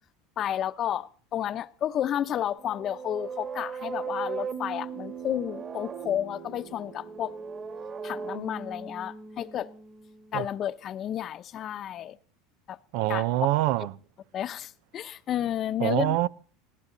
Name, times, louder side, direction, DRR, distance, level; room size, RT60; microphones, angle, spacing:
voice 1, 0.4-7.3 8.0-9.7 10.3-12.2 12.7-12.8 13.1-13.3 14.3-16.2, left 10 dB, 40° left, 0.9 m, -31 dB
sound 1, 2.6-10.4, right 6 dB, 35° right, 2.9 m, -38 dB
voice 2, 12.9-13.9 15.8-16.3, right 16 dB, 70° right, 0.7 m, -25 dB
20.5 x 17.0 x 4.0 m
supercardioid pair, 110°, 0 cm